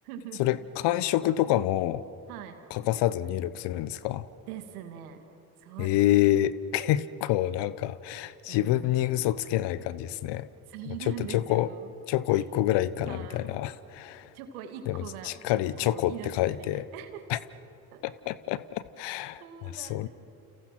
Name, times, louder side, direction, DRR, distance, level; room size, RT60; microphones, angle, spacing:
voice 1, 0.0-0.7 2.3-2.6 4.5-5.2 5.6-6.5 8.4-9.2 10.7-11.9 12.3-12.5 13.1-13.6 14.3-17.3 17.9-18.0 19.4-20.1, right 10 dB, 85° right, 6 dB, 2.4 m, -43 dB
voice 2, 0.8-2.0 2.7-4.3 5.8-10.5 11.1-11.7 12.1-14.3 14.9-16.8 17.3-17.4 18.0-20.1, left 14 dB, 70° left, 17 dB, 1.0 m, -27 dB
29.5 x 29.5 x 6.0 m, 2.9 s
hypercardioid pair, 50°, 43 cm